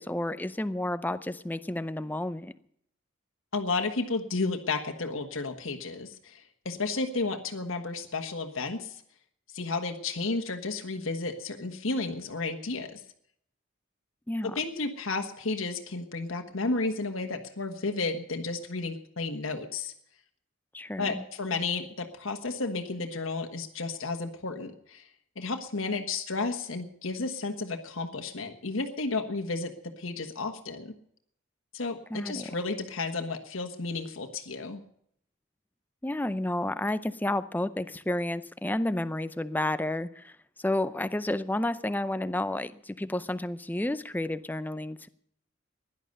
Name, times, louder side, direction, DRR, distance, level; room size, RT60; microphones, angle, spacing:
voice 1, 0.0-2.5 14.3-14.5 20.7-21.2 32.1-32.5 36.0-40.3 40.6-45.1, left 1 dB, 10° left, 13 dB, 0.5 m, -31 dB
voice 2, 3.5-9.0 9.5-13.0 14.4-19.9 21.0-25.1 25.3-30.9 31.7-34.8, left 3 dB, 85° left, 4 dB, 1.4 m, -32 dB
16.0 x 11.5 x 6.6 m, 0.69 s
head